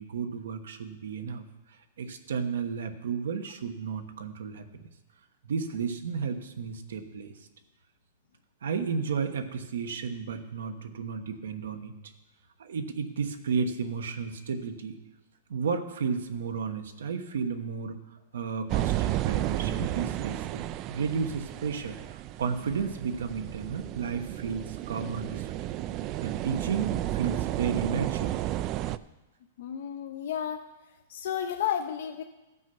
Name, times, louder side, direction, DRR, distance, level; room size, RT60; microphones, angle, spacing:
voice 1, 0.0-1.4 2.0-4.8 5.4-7.3 8.6-11.9 12.6-15.0 15.5-18.0 18.3-25.7 26.2-28.4, right 6 dB, 85° right, 6 dB, 1.1 m, -33 dB
sound 1, 18.7-29.0, right 14 dB, 35° right, 0.3 m, -32 dB
voice 2, 29.6-30.6 31.1-32.2, left 9 dB, 65° left, 6 dB, 0.6 m, -32 dB
14.0 x 6.2 x 5.4 m, 1.0 s
hypercardioid pair, 140°, 0 cm